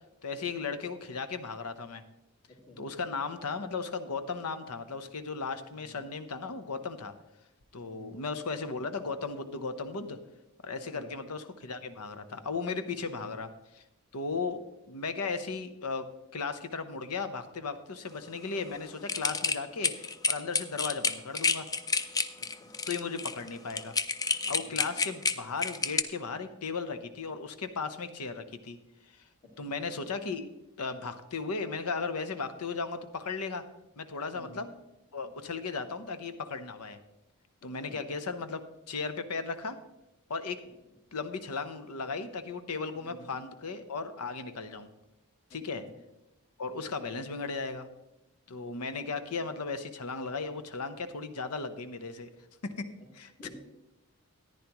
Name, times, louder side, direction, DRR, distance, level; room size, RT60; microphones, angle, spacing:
voice 1, 0.2-2.0 2.8-7.1 7.7-10.2 10.6-13.5 13.7-13.8 14.1-16.1 16.3-21.7 22.9-23.9 24.5-28.8 29.1-29.2 29.6-30.5 30.8-33.6 34.0-34.7 35.1-37.0 37.6-38.6 38.9-39.8 40.3-40.6 41.1-44.9 45.5-45.8 46.6-47.9 48.5-52.3 52.6-52.9 53.1-53.5, left 4 dB, 90° left, 10 dB, 0.9 m, -36 dB
voice 2, 2.5-2.8 5.7-6.0 7.8-8.1 10.9-11.1 13.0-13.3 22.4-22.7 24.6-24.8 29.4-29.7 34.3-34.6 37.6-38.0 42.9-43.3 45.5-45.9 46.6-46.8 48.5-48.8 53.4-53.5, left 1 dB, 40° left, -9 dB, 2.8 m, -52 dB
sound 1, 19.1-26.0, left 5 dB, 15° left, 0.3 m, -29 dB
14.0 x 10.0 x 3.0 m, 0.94 s
head